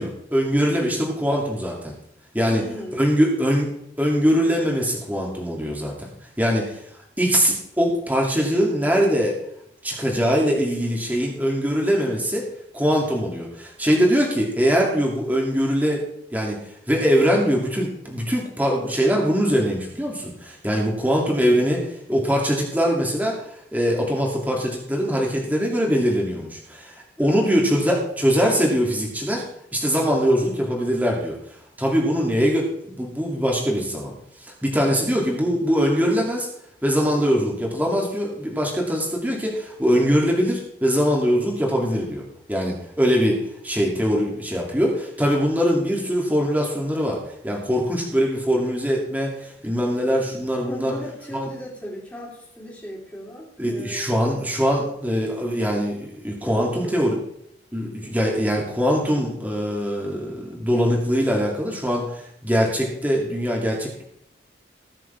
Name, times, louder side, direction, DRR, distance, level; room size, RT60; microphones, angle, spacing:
voice 1, 0.0-1.9 2.3-2.6 2.9-3.7 4.0-6.1 6.4-6.8 7.2-9.4 9.8-12.4 12.7-16.0 16.3-16.6 16.9-29.4 29.7-31.4 31.8-34.1 34.4-36.5 36.8-42.2 42.5-43.4 43.6-47.2 47.4-50.9 51.3-51.5 53.6-57.2 57.7-64.0, equal, 10° right, -1 dB, 2.7 m, -22 dB
voice 2, 2.5-3.0 27.2-27.8 50.6-54.2 56.4-56.9 58.0-58.1, equal, 10° left, -5 dB, 3.8 m, -37 dB
20.0 x 7.5 x 3.5 m, 0.75 s
head